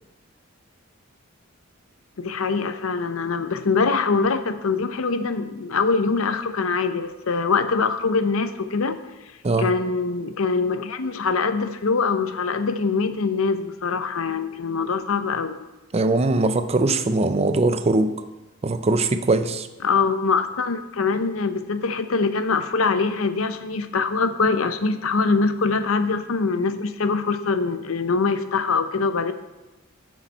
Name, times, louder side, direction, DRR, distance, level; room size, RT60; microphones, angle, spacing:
voice 1, 2.2-9.0 9.6-15.6 19.8-29.3, left 4 dB, 75° left, 10 dB, 0.7 m, -23 dB
voice 2, 15.9-18.1 18.6-19.7, right 2 dB, 30° right, 10 dB, 0.5 m, -21 dB
11.5 x 6.4 x 4.4 m, 1.1 s
head